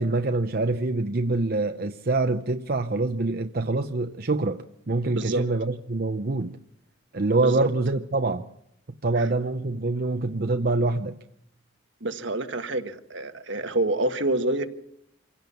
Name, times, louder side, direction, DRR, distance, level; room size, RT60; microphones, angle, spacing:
voice 1, 0.0-6.6 7.1-8.4 9.0-11.2, right 3 dB, 55° right, 0.8 m, -25 dB
voice 2, 12.0-14.7, right 2 dB, 75° right, 1.6 m, -27 dB
26.5 x 17.0 x 7.0 m
head